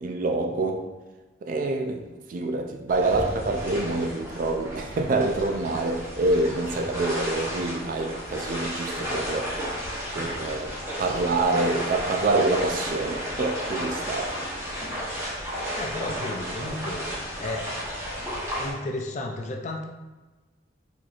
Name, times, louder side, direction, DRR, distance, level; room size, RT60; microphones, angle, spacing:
voice 1, 0.0-0.9 1.4-9.5 10.1-14.4, right 2 dB, 45° right, 0.3 m, -26 dB
sound 1, 2.9-18.7, equal, 15° right, 0.9 m, -33 dB
voice 2, 15.7-17.7 18.6-19.8, left 2 dB, 40° left, 0.4 m, -33 dB
4.0 x 3.0 x 2.4 m
head